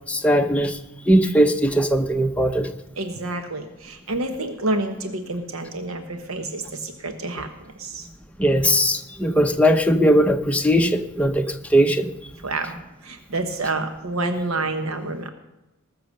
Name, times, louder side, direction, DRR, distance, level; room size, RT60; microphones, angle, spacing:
voice 1, 0.1-0.8 1.1-2.7 8.4-12.1, equal, 5° left, 4 dB, 0.8 m, -19 dB
voice 2, 2.9-8.1 12.4-12.8 13.0-15.3, right 2 dB, 75° right, 7 dB, 1.1 m, -28 dB
19.5 x 6.7 x 6.5 m, 0.99 s
head